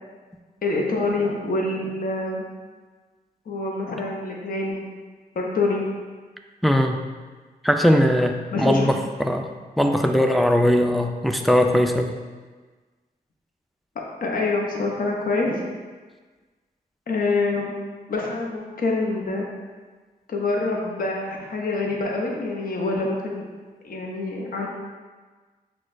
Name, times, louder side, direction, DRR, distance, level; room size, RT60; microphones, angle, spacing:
voice 1, 0.6-2.5 3.5-4.8 5.3-5.9 8.5-8.9 14.2-15.7 17.1-17.7 18.1-19.5 20.3-23.5 23.8-24.7, left 3 dB, 60° left, -1 dB, 0.7 m, -26 dB
voice 2, 6.6-7.0 7.6-12.1, equal, ahead, 4 dB, 0.3 m, -20 dB
5.9 x 2.3 x 2.5 m, 1.4 s
cardioid pair, 65°, 16 cm